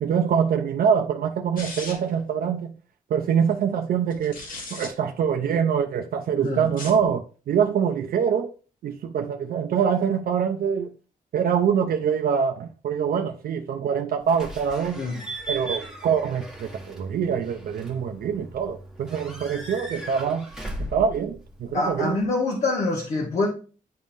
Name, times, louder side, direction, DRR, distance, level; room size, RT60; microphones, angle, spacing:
voice 1, 0.0-2.7 3.1-4.4 4.7-8.5 8.8-10.9 11.3-15.0 15.5-20.5 20.8-22.2, right 7 dB, 80° right, 0.5 m, -24 dB
sound 1, 1.6-2.2 4.1-4.9 6.6-7.1, left 2 dB, 70° left, 1.7 m, -37 dB
Slam / Squeak / Alarm, 14.3-22.2, right 1 dB, 5° right, 1.2 m, -38 dB
voice 2, 21.7-23.5, left 3 dB, 55° left, 1.1 m, -25 dB
10.5 x 3.6 x 2.5 m
wide cardioid pair, 170°, 15 cm